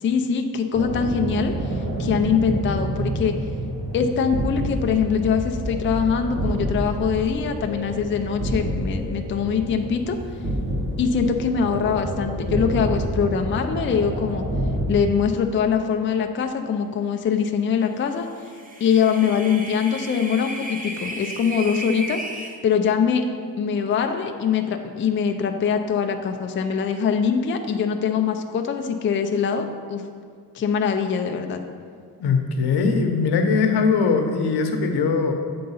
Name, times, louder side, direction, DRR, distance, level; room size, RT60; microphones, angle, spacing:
voice 1, 0.0-3.3 3.9-10.2 11.0-14.4 14.9-18.3 18.8-22.2 22.6-23.2 23.6-30.0 30.5-31.6, left 6 dB, 35° left, 5 dB, 0.4 m, -23 dB
sound 1, 0.7-14.9, right 1 dB, 65° right, 1.9 m, -28 dB
sound 2, 18.3-22.6, right 2 dB, 20° right, 0.7 m, -34 dB
voice 2, 32.2-35.3, left 4 dB, 85° left, 5 dB, 0.8 m, -21 dB
7.8 x 3.8 x 5.4 m, 2.1 s
wide cardioid pair, 155°, 38 cm